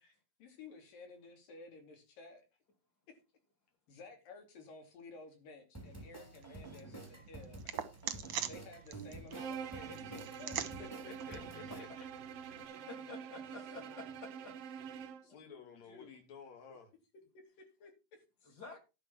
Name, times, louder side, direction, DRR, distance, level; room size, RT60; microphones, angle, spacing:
voice 1, 0.0-2.4 3.1-3.2 3.9-7.6 8.5-10.8 15.9-16.2 17.3-18.6, left 3 dB, 90° left, 4.7 m, -54 dB
sound 1, 5.7-11.8, right 2 dB, 5° left, 2.3 m, -50 dB
sound 2, 5.8-12.6, right 9 dB, 60° right, 1.6 m, -45 dB
Bowed string instrument, 9.3-15.3, right 7 dB, 80° right, 1.3 m, -46 dB
voice 2, 10.8-11.9 12.6-13.0 13.6-13.7 15.2-16.9, left 6 dB, 55° left, 3.8 m, -54 dB
voice 3, 12.9-14.6 15.2-15.3 18.6-18.8, left 3 dB, 30° left, 2.9 m, -50 dB
12.0 x 6.4 x 5.9 m
omnidirectional pair, 3.8 m